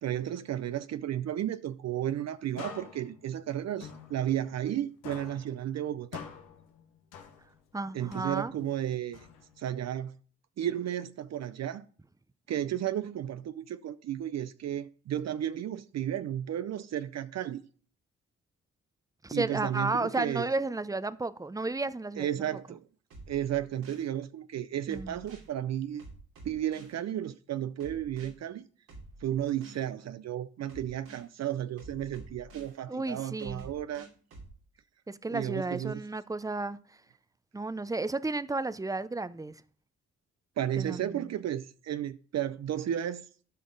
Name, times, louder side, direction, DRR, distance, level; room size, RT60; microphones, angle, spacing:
voice 1, 0.0-6.2 7.9-9.3 9.6-10.2 10.6-11.9 12.5-17.6 19.3-20.5 22.2-22.8 23.3-26.0 26.4-28.6 29.2-34.1 35.3-36.0 40.6-43.3, right 11 dB, 60° right, 0.5 m, -33 dB
sound 1, 2.6-4.8 5.0-7.7 8.1-9.8, left 7 dB, 90° left, 1.0 m, -47 dB
voice 2, 7.7-8.5 19.2-22.3 24.9-25.2 32.9-33.7 35.1-36.8 37.5-39.6 40.8-41.2, right 3 dB, 10° right, 0.6 m, -33 dB
sound 2, 23.1-24.1 24.9-25.5 26.0-27.0 27.8-28.3 28.9-29.9 30.7-31.3 31.8-32.7 33.4-34.5, right 2 dB, 90° right, 2.7 m, -49 dB
12.5 x 5.1 x 3.9 m
supercardioid pair, 50°, 31 cm